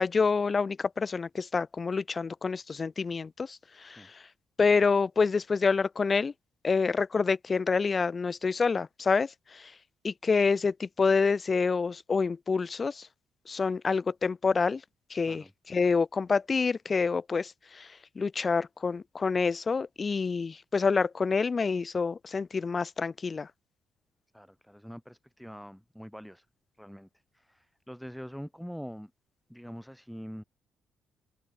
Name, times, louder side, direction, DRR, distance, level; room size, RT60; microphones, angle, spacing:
voice 1, 0.0-4.3 4.6-6.3 6.6-9.8 10.0-13.1 13.5-14.8 15.1-23.5, left 4 dB, 35° left, 2.0 m, -27 dB
voice 2, 24.3-26.5 26.8-27.1 27.3-29.1 29.5-30.4, equal, ahead, 5.5 m, -44 dB
cardioid pair, 90°, 0 cm